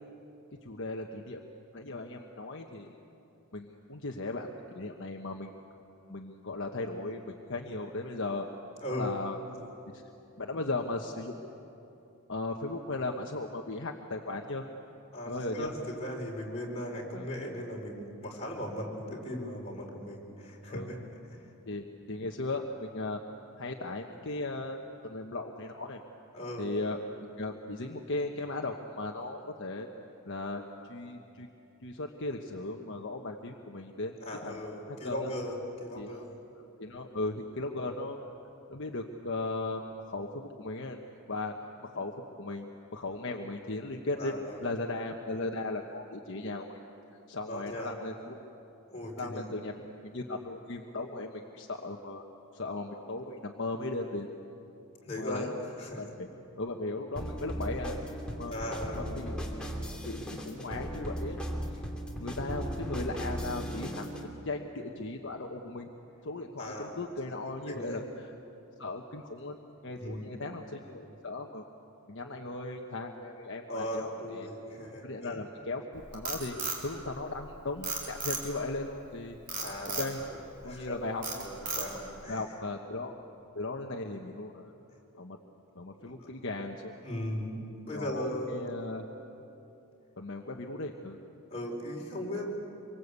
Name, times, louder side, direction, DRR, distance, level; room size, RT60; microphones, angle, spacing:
voice 1, 0.6-1.4 1.7-3.0 3.5-5.5 6.1-8.5 8.9-9.4 9.9-10.0 10.4-11.3 12.3-14.6 15.3-15.7 17.1-17.3 20.7-20.9 21.7-23.2 23.6-26.0 26.6-27.0 27.4-29.9 30.3-30.6 30.9-31.5 31.8-34.2 34.4-34.6 34.9-35.3 36.0-36.3 36.8-38.2 38.7-41.0 41.3-41.5 41.8-42.1 42.4-44.3 44.6-46.8 47.3-48.4 49.2-49.7 50.0-52.2 52.5-54.3 55.2-55.6 56.0-56.3 56.6-58.0 58.4-58.5 58.9-59.4 60.1-61.8 62.2-64.1 64.4-65.9 66.2-68.3 68.8-69.6 69.8-71.6 72.1-74.5 75.0-76.6 76.8-79.4 80.0-80.2 80.6-81.5 82.3-83.1 83.5-84.7 85.2-85.4 85.7-87.0 87.9-89.1 90.2-91.2, left 2 dB, 55° left, 2 dB, 1.2 m, -37 dB
voice 2, 8.8-9.1 15.1-21.0 26.3-26.7 34.2-36.3 44.2-44.6 47.5-47.9 48.9-49.5 55.0-55.5 55.8-56.0 58.5-59.1 66.6-67.0 67.7-68.0 69.9-70.3 73.7-75.4 79.5-80.0 80.3-81.0 81.4-82.4 86.0-86.1 87.0-88.7 91.5-92.5, left 1 dB, 30° left, -2 dB, 4.6 m, -38 dB
sound 1, 57.2-64.3, equal, 5° left, 2.5 m, -37 dB
Frog, 75.9-77.5 77.8-78.7 79.5-80.1 80.6-80.9 81.2-82.1, right 4 dB, 40° right, 3.9 m, -35 dB
26.5 x 24.0 x 8.3 m, 2.9 s
head